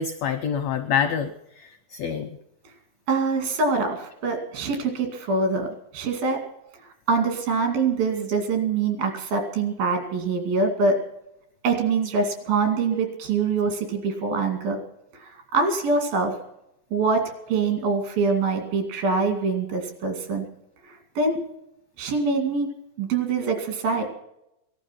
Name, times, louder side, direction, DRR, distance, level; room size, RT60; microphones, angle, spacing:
voice 1, 0.0-2.4, left 7 dB, 80° left, 7 dB, 1.5 m, -27 dB
voice 2, 3.1-6.4 7.1-11.0 11.6-14.8 15.1-16.4 16.9-17.2 17.5-20.5 20.9-21.4 22.0-22.7 23.0-24.1, right 4 dB, 80° right, 5 dB, 4.2 m, -24 dB
18.5 x 12.0 x 5.9 m, 0.84 s
omnidirectional pair, 4.1 m